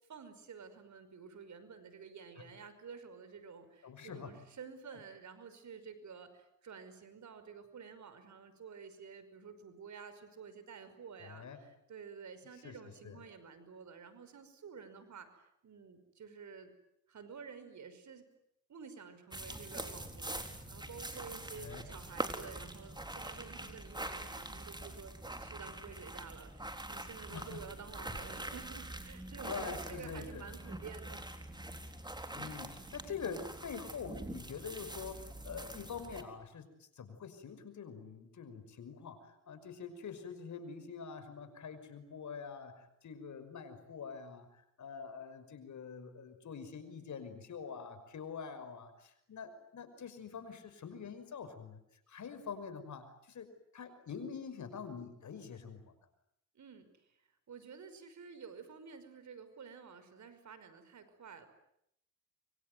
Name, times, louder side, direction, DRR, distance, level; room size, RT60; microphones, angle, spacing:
voice 1, 0.1-16.7 17.1-18.3 18.7-31.3 56.6-56.9 57.5-61.5, right 6 dB, 60° right, 11 dB, 5.5 m, -51 dB
voice 2, 3.8-4.4 11.2-11.6 12.6-12.8 13.0-13.2 21.5-21.8 27.3-27.6 29.4-30.4 32.3-44.5 44.8-51.8 52.1-53.5 53.7-55.9, left 6 dB, 60° left, 10 dB, 5.7 m, -45 dB
sound 1, 19.3-36.2, right 1 dB, 15° right, 4.1 m, -44 dB
25.5 x 24.0 x 9.4 m, 0.76 s
cardioid pair, 70°, 32 cm